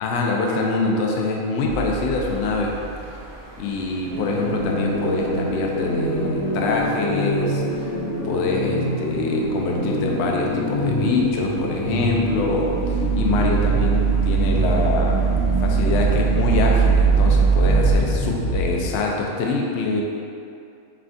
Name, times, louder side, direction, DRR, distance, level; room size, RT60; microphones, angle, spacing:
voice 1, 0.0-2.7 3.6-8.0 8.2-15.2 15.6-20.0, left 3 dB, 65° left, -1 dB, 0.7 m, -24 dB
sound 1, 1.7-3.2 11.8-17.9, right 6 dB, 65° right, 1.2 m, -21 dB
sound 2, 4.1-19.1, equal, 50° left, 1.2 m, -26 dB
5.6 x 2.3 x 2.5 m, 2.5 s
omnidirectional pair, 1.5 m